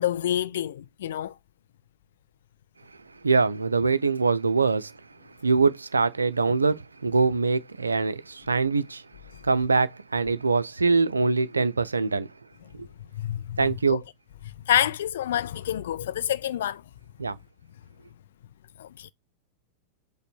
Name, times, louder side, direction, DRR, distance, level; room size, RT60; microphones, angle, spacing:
voice 1, 0.0-1.4 13.1-13.6 13.9-14.0 14.6-16.8 18.8-19.1, left 11 dB, 60° left, 0.4 m, -27 dB
voice 2, 3.2-4.9 5.4-9.0 9.4-12.3 12.7-12.9 13.6-14.0 17.2-17.4, right 4 dB, 80° right, 0.4 m, -23 dB
5.2 x 2.1 x 4.2 m
figure-of-eight pair, 90°, 0 cm